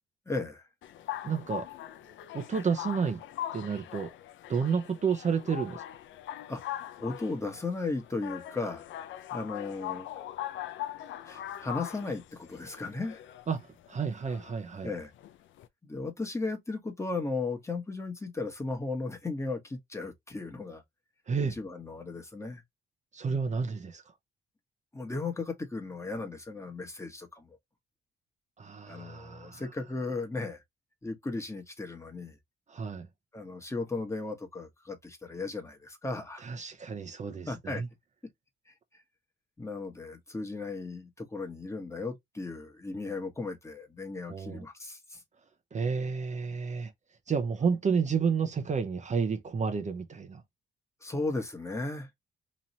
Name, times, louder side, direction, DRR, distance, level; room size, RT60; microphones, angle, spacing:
voice 1, 0.3-0.7 6.5-6.7 7.0-8.8 9.3-10.1 11.2-13.2 14.8-15.1 15.8-20.8 21.5-22.6 24.9-27.6 28.9-30.6 31.0-32.4 33.3-36.5 37.5-37.8 38.7-38.8 39.6-45.2 51.0-52.1, left 3 dB, 15° left, 1.1 m, -36 dB
sound 1, 0.8-15.7, left 12 dB, 75° left, 0.5 m, -41 dB
voice 2, 1.2-1.7 2.3-3.2 3.5-4.1 4.5-5.8 13.5-14.9 21.3-21.6 23.1-24.0 28.6-29.6 32.7-33.1 36.4-37.9 44.3-44.6 45.7-46.9 47.3-50.4, right 6 dB, 35° right, 0.7 m, -31 dB
3.0 x 2.8 x 4.0 m
cardioid pair, 90°, 20 cm